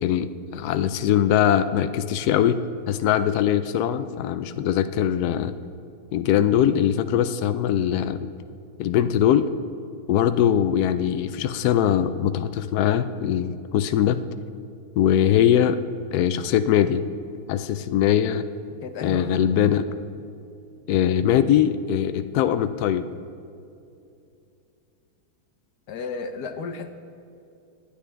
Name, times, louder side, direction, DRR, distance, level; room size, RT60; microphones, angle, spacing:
voice 1, 0.0-2.6 2.9-5.5 6.1-8.3 8.8-9.5 10.1-14.2 15.0-15.8 16.1-17.0 17.5-18.5 19.0-19.9 20.9-23.1, left 10 dB, 85° left, 10 dB, 0.8 m, -21 dB
voice 2, 18.8-19.5 25.9-26.9, left 5 dB, 60° left, 8 dB, 1.2 m, -33 dB
25.5 x 9.9 x 3.3 m, 2.6 s
omnidirectional pair, 2.2 m